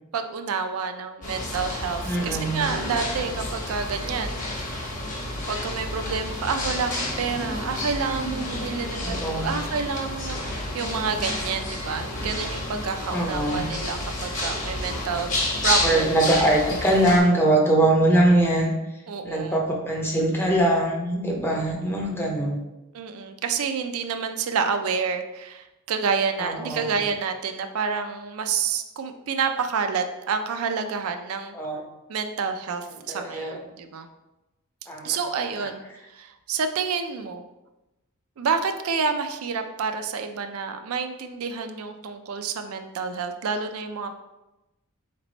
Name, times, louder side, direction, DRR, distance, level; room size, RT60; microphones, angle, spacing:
voice 1, 0.1-4.4 5.5-15.3 15.6-16.0 16.3-16.4 19.1-19.6 22.9-31.6 32.1-34.1 35.0-35.8 36.1-37.4 38.4-44.1, right 5 dB, 70° right, 7 dB, 0.4 m, -29 dB
sound 1, 1.2-17.2, left 1 dB, 35° left, 1.1 m, -30 dB
voice 2, 2.0-2.7 9.0-9.5 13.1-13.7 15.8-18.7 19.2-22.6 26.4-27.0 31.5-31.8 33.1-33.6 34.9-35.7, right 1 dB, 10° left, 0 dB, 0.6 m, -22 dB
4.0 x 3.3 x 3.9 m, 0.98 s
head